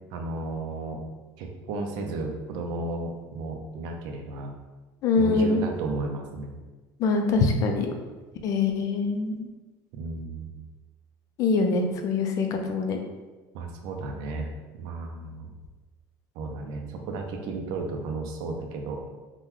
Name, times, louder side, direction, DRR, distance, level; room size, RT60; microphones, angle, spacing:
voice 1, 0.1-1.0 1.4-4.5 5.2-6.6 9.9-10.6 13.5-14.5 14.7-15.5 16.4-19.0, right 3 dB, 65° right, 3 dB, 0.5 m, -33 dB
voice 2, 5.0-5.6 7.0-7.9 8.4-9.5 11.4-13.0, left 4 dB, 45° left, 4 dB, 0.4 m, -24 dB
3.6 x 2.2 x 2.9 m, 1.2 s
cardioid pair, 145°, 8 cm